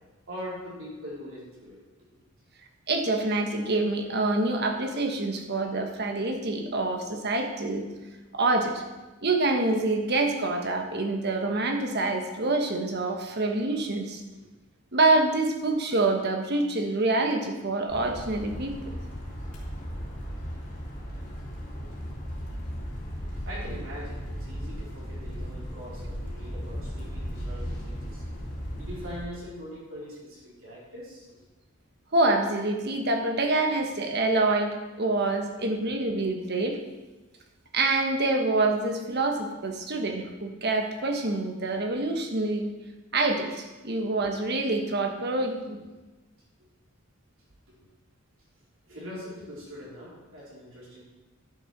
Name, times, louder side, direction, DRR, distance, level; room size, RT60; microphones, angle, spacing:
voice 1, 0.3-1.8 21.9-22.0 23.4-28.2 28.8-31.3 48.9-51.0, equal, 65° right, -6 dB, 4.5 m, -42 dB
voice 2, 2.9-7.9 8.3-8.8 9.2-14.2 14.9-18.7 32.1-36.8 37.7-42.7 43.1-45.8, right 2 dB, 50° right, 4 dB, 1.3 m, -26 dB
sound 1, 17.9-29.2, equal, 35° left, 3.2 m, -36 dB
11.0 x 7.2 x 6.0 m, 1.2 s
head